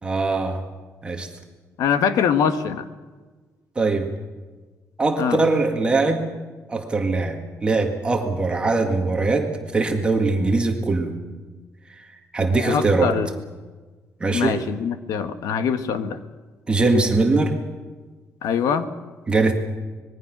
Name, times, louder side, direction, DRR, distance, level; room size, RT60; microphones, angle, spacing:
voice 1, 0.0-0.6 1.0-1.3 3.8-4.1 5.0-6.3 6.7-11.1 12.3-13.2 14.2-14.6 16.7-17.6 19.3-19.5, right 3 dB, 15° right, 3 dB, 1.9 m, -21 dB
voice 2, 1.8-2.8 5.2-5.4 12.5-13.3 14.3-16.2 18.4-18.9, left 7 dB, 80° left, 9 dB, 1.5 m, -23 dB
25.5 x 21.0 x 6.1 m, 1.4 s
cardioid pair, 180°, 6 cm